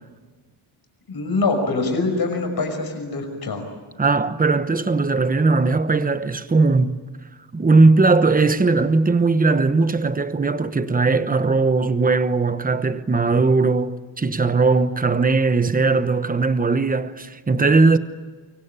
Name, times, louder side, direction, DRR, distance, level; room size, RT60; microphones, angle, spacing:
voice 1, 1.1-3.6, left 3 dB, 50° left, 5.7 m, -24 dB
voice 2, 4.0-7.0 7.5-18.0, right 3 dB, 15° right, 0.9 m, -19 dB
24.5 x 24.0 x 8.9 m
wide cardioid pair, 175°, 49 cm